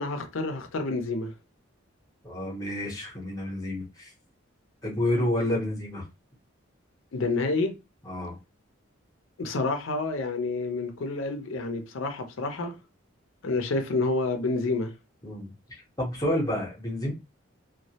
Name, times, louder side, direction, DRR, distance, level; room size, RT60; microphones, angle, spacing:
voice 1, 0.0-1.3 7.1-7.7 9.4-12.8 13.4-14.9, left 3 dB, 75° left, 0.5 m, -28 dB
voice 2, 2.2-4.1 4.8-6.0 8.0-8.3 15.2-15.5 16.0-17.1, left 1 dB, 15° left, 0.7 m, -29 dB
2.2 x 2.0 x 2.8 m
head